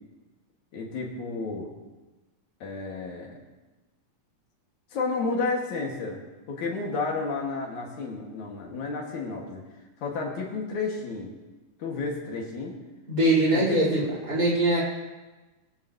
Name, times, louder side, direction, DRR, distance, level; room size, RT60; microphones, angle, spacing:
voice 1, 0.7-1.7 2.6-3.4 4.9-6.2 6.5-9.6 10.0-11.3 11.8-12.7 13.5-13.9, left 3 dB, 70° left, -1 dB, 3.5 m, -31 dB
voice 2, 13.1-14.8, right 1 dB, 30° right, -6 dB, 5.5 m, -22 dB
21.5 x 12.5 x 3.2 m, 1.2 s
omnidirectional pair, 3.6 m